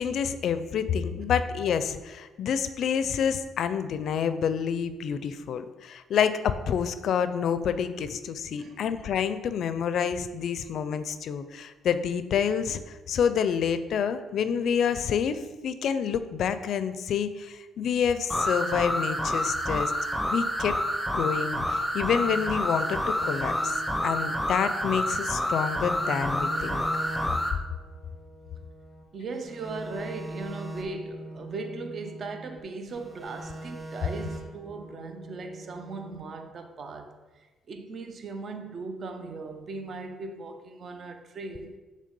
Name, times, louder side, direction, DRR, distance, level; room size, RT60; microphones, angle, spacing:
voice 1, 0.0-19.9 20.3-20.8 21.1-26.9, left 7 dB, 70° left, 0.4 m, -28 dB
sound 1, 18.3-27.6, equal, ahead, 0.7 m, -28 dB
sound 2, 22.2-25.5 25.8-29.0 29.4-32.6 32.9-36.2, right 2 dB, 25° right, 1.4 m, -42 dB
voice 2, 29.1-41.8, right 3 dB, 50° right, 0.6 m, -38 dB
6.7 x 3.2 x 5.2 m
cardioid pair, 90°, 0 cm